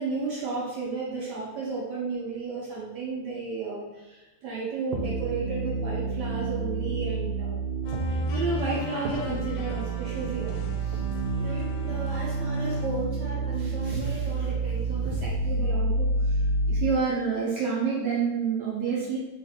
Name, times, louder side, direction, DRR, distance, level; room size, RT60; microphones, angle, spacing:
voice 1, 0.0-7.7 8.0-11.1 11.4-19.2, right 5 dB, 70° right, -4 dB, 1.1 m, -32 dB
sound 1, 4.9-16.9, right 2 dB, 90° right, 1.5 m, -29 dB
sound 2, 7.8-12.9, left 4 dB, 80° left, 1.4 m, -41 dB
3.4 x 2.5 x 4.1 m, 1.1 s
omnidirectional pair, 2.3 m